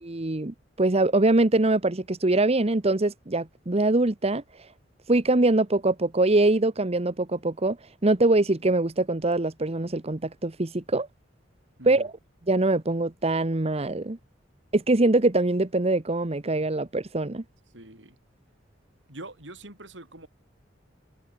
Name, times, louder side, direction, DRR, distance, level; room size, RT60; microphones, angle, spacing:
voice 1, 0.0-4.7 5.1-11.1 11.8-12.1 12.5-14.2 14.7-17.4, right 2 dB, 35° right, 1.1 m, -23 dB
voice 2, 17.7-18.2 19.1-20.3, right 2 dB, 70° right, 7.2 m, -44 dB
head